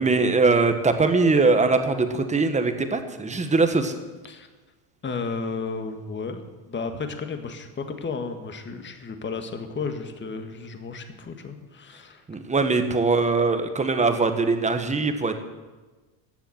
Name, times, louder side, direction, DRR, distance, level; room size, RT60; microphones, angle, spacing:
voice 1, 0.0-3.9 12.3-15.4, right 3 dB, 15° right, 7 dB, 1.4 m, -21 dB
voice 2, 5.0-6.4 6.7-12.2, left 4 dB, 25° left, 7 dB, 1.6 m, -33 dB
15.0 x 7.0 x 9.1 m, 1.2 s
supercardioid pair, 115°, 47 cm